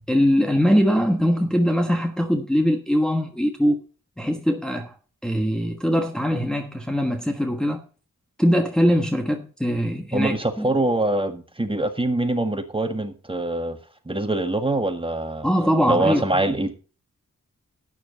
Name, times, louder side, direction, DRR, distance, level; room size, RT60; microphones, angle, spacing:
voice 1, 0.1-3.8 4.2-4.9 5.2-7.8 8.4-10.7 15.4-16.2, equal, ahead, 1.3 m, -21 dB
voice 2, 10.1-13.8 14.1-15.5 15.9-16.7, right 2 dB, 15° right, 1.8 m, -24 dB
12.5 x 9.6 x 4.1 m
wide cardioid pair, 125°, 33 cm